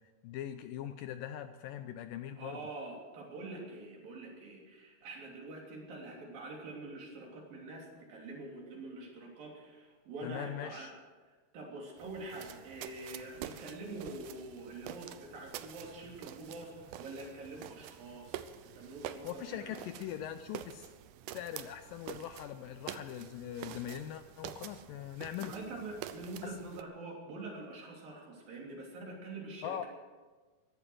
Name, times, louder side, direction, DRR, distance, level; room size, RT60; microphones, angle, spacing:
voice 1, 0.2-2.6 10.2-10.9 19.2-20.9 21.3-25.5 26.4-26.5 29.6-29.9, left 10 dB, 80° left, 10 dB, 2.1 m, -41 dB
voice 2, 2.4-10.9 11.5-18.5 18.7-20.0 25.4-29.9, right 2 dB, 65° right, -1 dB, 4.9 m, -45 dB
sound 1, 12.0-26.8, right 11 dB, 85° right, 1.8 m, -47 dB
16.0 x 12.5 x 6.4 m, 1.3 s
omnidirectional pair, 4.4 m